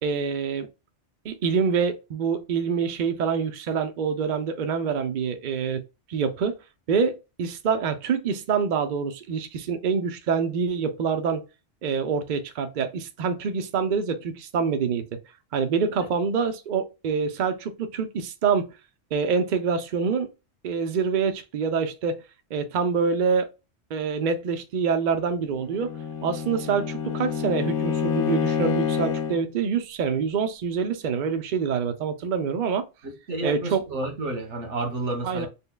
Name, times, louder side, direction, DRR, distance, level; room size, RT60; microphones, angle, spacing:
voice 1, 0.0-0.7 1.2-5.8 6.1-6.5 6.9-11.4 11.8-15.2 15.5-18.8 19.1-20.3 20.6-22.2 22.5-23.5 23.9-25.9 26.2-32.9 33.4-33.9 35.2-35.5, right 6 dB, 55° right, 0.6 m, -26 dB
Bowed string instrument, 25.6-29.5, left 7 dB, 80° left, 1.0 m, -27 dB
voice 2, 33.3-35.5, right 2 dB, 80° right, 1.4 m, -30 dB
5.3 x 2.1 x 2.2 m
omnidirectional pair, 1.2 m